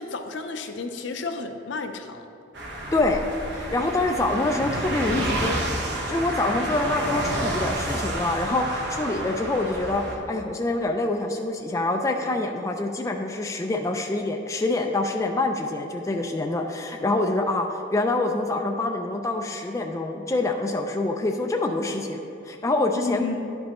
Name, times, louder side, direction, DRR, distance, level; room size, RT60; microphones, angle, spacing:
voice 1, 0.0-2.3 22.9-23.6, left 3 dB, 65° left, 6 dB, 0.5 m, -32 dB
sound 1, 2.5-10.2, right 1 dB, 60° right, 1.0 m, -29 dB
voice 2, 2.9-3.2 3.5-5.6 5.9-23.3, left 2 dB, 15° left, 3 dB, 0.3 m, -26 dB
10.5 x 5.3 x 3.0 m, 2.9 s
head